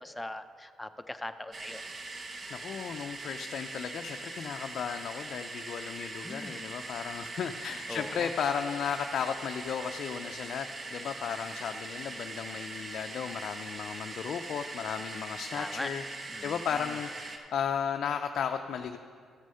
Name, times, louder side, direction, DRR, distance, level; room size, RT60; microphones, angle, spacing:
voice 1, 0.0-1.8 6.2-6.7 7.9-8.3 15.5-15.9 16.3-17.0, left 1 dB, 10° left, 9 dB, 0.6 m, -40 dB
sound 1, 1.5-17.4, right 3 dB, 35° right, 0.9 m, -41 dB
voice 2, 2.5-16.0 16.4-19.0, left 7 dB, 65° left, 6 dB, 0.4 m, -35 dB
13.0 x 6.2 x 5.5 m, 2.1 s
cardioid pair, 90°, 0 cm